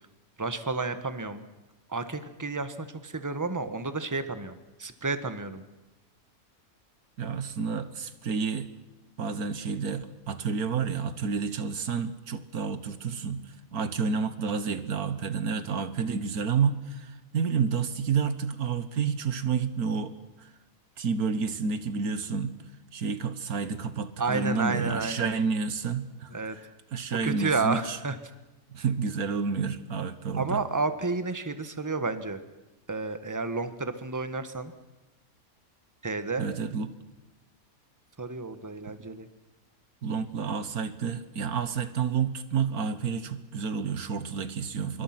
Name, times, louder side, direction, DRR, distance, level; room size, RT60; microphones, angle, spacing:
voice 1, 0.4-1.4 1.9-5.6 24.2-25.3 26.3-26.6 27.1-28.1 30.4-32.4 32.9-34.7 36.0-36.5 38.2-39.3, right 3 dB, 15° right, 10 dB, 1.4 m, -31 dB
voice 2, 7.2-8.7 9.2-20.5 21.0-22.6 22.9-26.3 26.6-26.7 26.9-28.0 28.7-30.6 36.4-36.9 38.9-39.0 40.0-45.0, right 5 dB, 85° right, 12 dB, 1.8 m, -30 dB
26.5 x 23.0 x 6.0 m, 1.0 s
omnidirectional pair, 1.5 m